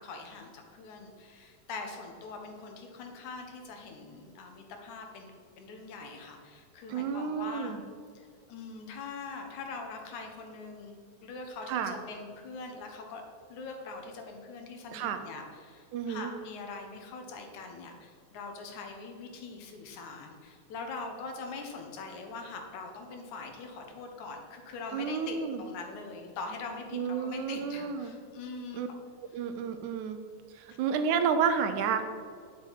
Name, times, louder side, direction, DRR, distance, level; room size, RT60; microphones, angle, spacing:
voice 1, 0.0-7.8 8.2-13.2 13.5-28.8 30.7-30.8, left 4 dB, 85° left, 3 dB, 2.8 m, -43 dB
voice 2, 6.9-7.8 11.7-12.0 14.9-15.2 15.9-16.3 24.9-25.6 26.9-28.1 28.7-28.9 29.3-30.2 30.6-32.1, right 6 dB, 90° right, 8 dB, 2.3 m, -30 dB
10.5 x 7.6 x 5.8 m, 2.2 s
omnidirectional pair, 3.3 m